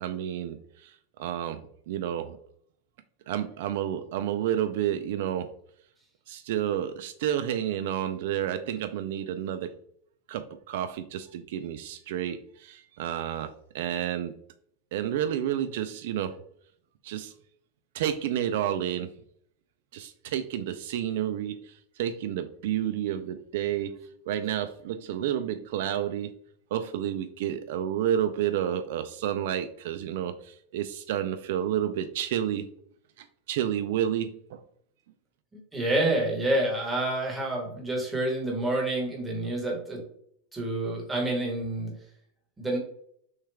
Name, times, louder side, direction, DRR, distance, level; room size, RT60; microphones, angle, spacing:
voice 1, 0.0-2.4 3.3-5.5 6.3-9.7 10.3-14.4 14.9-16.4 17.0-17.3 17.9-19.1 19.9-26.3 26.7-32.7 33.2-34.6, right 10 dB, 60° right, 10 dB, 0.3 m, -30 dB
voice 2, 35.5-40.0 40.5-41.9 42.6-42.8, right 1 dB, 5° right, -2 dB, 1.2 m, -28 dB
6.3 x 2.3 x 3.4 m, 0.66 s
supercardioid pair, 175°, 0 cm